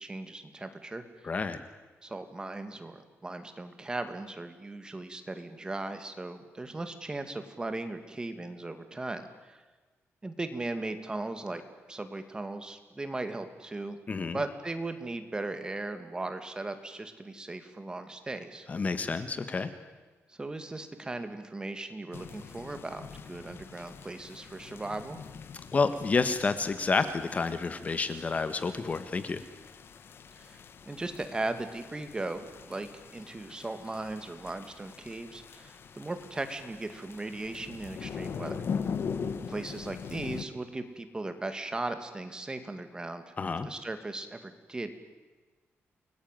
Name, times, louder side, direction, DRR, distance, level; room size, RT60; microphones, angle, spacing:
voice 1, 0.0-1.4 2.0-9.6 10.2-11.6 11.9-14.0 14.3-18.7 20.3-25.2 30.4-30.6 30.8-38.7 39.4-43.3 43.7-44.9, right 2 dB, 15° right, 8 dB, 2.4 m, -38 dB
voice 2, 1.2-1.6 14.1-14.4 18.7-19.7 25.7-29.4 43.4-43.7, left 4 dB, 30° left, 11 dB, 1.5 m, -29 dB
sound 1, 22.1-40.4, left 6 dB, 55° left, 1.7 m, -42 dB
30.0 x 20.5 x 9.3 m, 1.3 s
wide cardioid pair, 145°, 5 cm